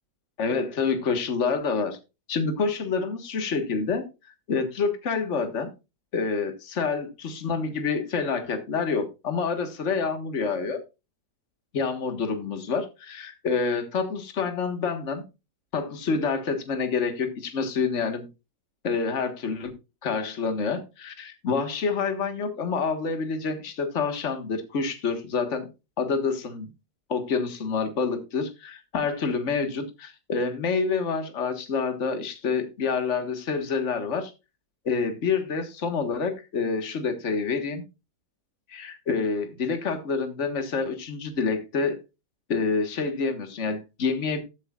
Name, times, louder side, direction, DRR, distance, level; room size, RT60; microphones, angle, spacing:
voice 1, 0.4-2.0 2.3-4.1 4.5-5.7 6.1-10.8 11.7-15.2 15.7-18.3 18.8-19.7 20.0-25.7 26.0-26.7 27.1-34.3 34.9-37.8 38.7-42.0 42.5-44.4, left 5 dB, 45° left, 1.8 m, -27 dB
14.5 x 8.3 x 2.4 m
omnidirectional pair, 1.8 m